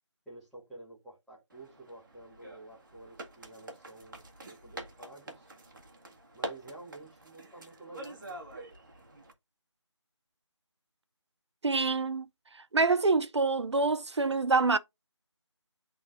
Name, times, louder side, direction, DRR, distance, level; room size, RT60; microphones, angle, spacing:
voice 1, 0.2-5.5 6.3-8.4, right 2 dB, ahead, 1.3 m, -50 dB
sound 1, 1.5-9.3, right 1 dB, 40° right, 1.6 m, -46 dB
voice 2, 11.6-12.2 12.7-14.8, right 3 dB, 65° right, 0.6 m, -26 dB
10.5 x 3.9 x 2.5 m
figure-of-eight pair, 170°, 15 cm